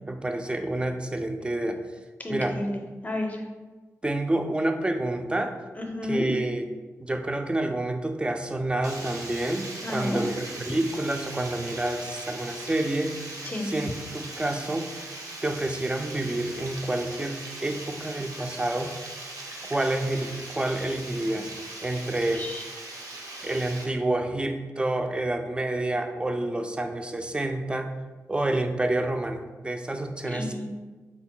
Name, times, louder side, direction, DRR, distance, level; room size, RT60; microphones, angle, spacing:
voice 1, 0.1-1.8 2.3-2.6 4.0-5.6 6.0-6.7 7.0-13.1 13.6-14.9 15.4-18.9 19.6-21.5 21.8-22.5 23.4-27.9 28.3-30.5, right 1 dB, 15° right, 6 dB, 0.4 m, -28 dB
voice 2, 2.2-3.4 5.8-6.3 9.8-10.2 13.4-13.7 22.3-22.6 30.2-30.7, left 1 dB, 25° left, 2 dB, 0.6 m, -31 dB
Water, 8.8-23.8, right 2 dB, 75° right, 0.7 m, -40 dB
3.7 x 2.1 x 3.7 m, 1.3 s
cardioid pair, 55°, 6 cm